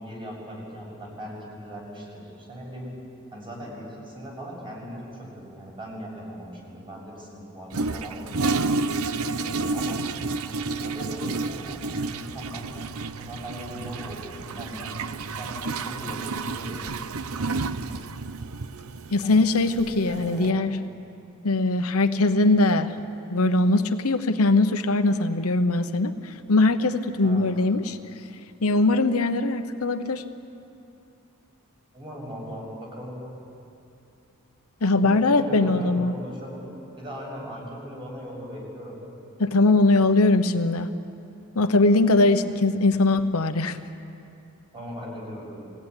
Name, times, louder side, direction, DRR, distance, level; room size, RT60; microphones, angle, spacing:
voice 1, 0.0-2.2 2.5-2.9 3.3-8.4 9.4-10.1 10.4-12.7 13.2-14.9 15.4-16.9 17.4-17.7 19.1-19.3 20.0-20.6 27.2-27.5 31.9-33.2 34.9-36.7 37.0-39.0 44.7-45.7, equal, 25° right, -3 dB, 7.2 m, -39 dB
Toilet flush, 7.7-20.5, right 3 dB, 75° right, 0.8 m, -31 dB
voice 2, 19.1-20.7 21.4-22.9 23.3-28.0 28.6-30.2 34.8-36.1 39.4-40.9 41.5-43.8, left 2 dB, 85° left, 8 dB, 1.0 m, -21 dB
23.0 x 17.0 x 9.8 m, 2.7 s
head